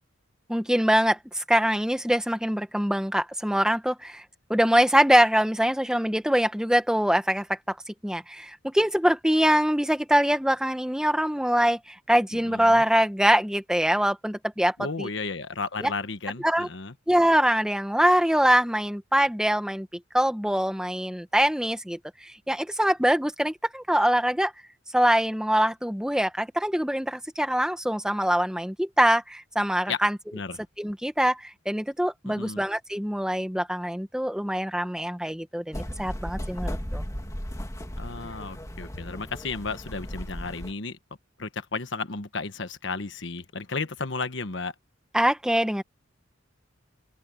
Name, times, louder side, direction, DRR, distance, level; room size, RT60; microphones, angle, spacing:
voice 1, 0.5-4.2 4.5-7.8 8.0-15.1 15.8-15.9 16.4-16.7 17.1-19.9 20.1-24.5 24.9-30.2 30.8-37.0 45.1-45.8, equal, 5° right, 1.4 m, -24 dB
voice 2, 12.5-12.8 14.8-16.9 29.9-30.0 30.3-30.6 32.3-32.6 38.0-41.0 41.4-44.7, left 4 dB, 65° left, 1.3 m, -33 dB
sound 1, 35.7-40.7, equal, 15° left, 2.5 m, -35 dB
open air
head